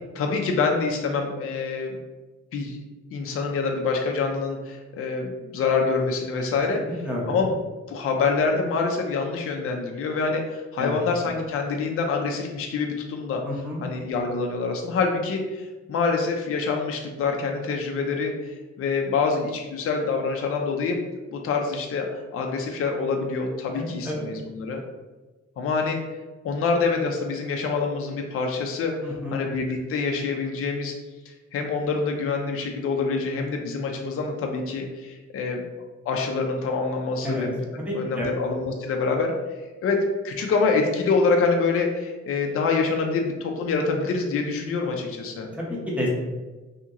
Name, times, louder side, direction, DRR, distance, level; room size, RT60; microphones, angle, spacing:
voice 1, 0.1-2.0 2.5-2.8 3.1-7.6 7.9-13.4 13.8-21.0 21.3-24.8 25.6-26.0 26.4-28.9 29.3-30.9 31.3-35.6 36.1-37.7 37.9-39.3 39.8-40.0 40.2-45.5, left 4 dB, 50° left, 2 dB, 0.4 m, -26 dB
voice 2, 6.8-7.4 10.8-11.0 13.4-13.8 23.7-24.3 29.0-29.4 37.2-37.4 37.9-38.3 45.5-46.1, left 1 dB, 5° right, -4 dB, 0.7 m, -30 dB
2.8 x 2.8 x 2.4 m, 1.2 s
wide cardioid pair, 135°, 29 cm